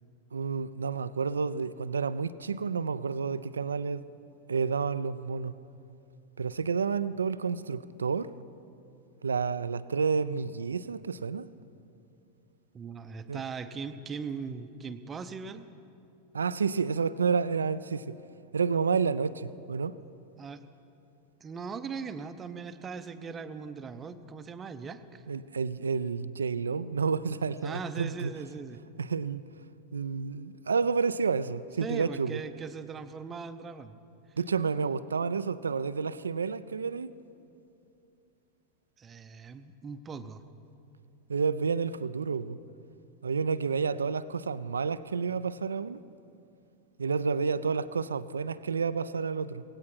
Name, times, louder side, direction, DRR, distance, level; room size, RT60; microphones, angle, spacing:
voice 1, 0.3-4.0 4.5-5.5 6.4-8.3 9.2-11.5 13.3-13.4 16.3-18.2 18.5-19.9 25.3-28.3 29.0-29.4 29.9-32.4 34.4-37.1 41.3-42.6 43.2-46.0 47.0-49.6, right 5 dB, 70° right, 0.4 m, -30 dB
voice 2, 12.7-15.7 20.4-20.6 21.4-25.2 27.3-28.8 31.8-34.0 39.0-40.4, right 5 dB, 20° right, 0.7 m, -40 dB
17.5 x 16.5 x 4.5 m
figure-of-eight pair, 90°, 0 cm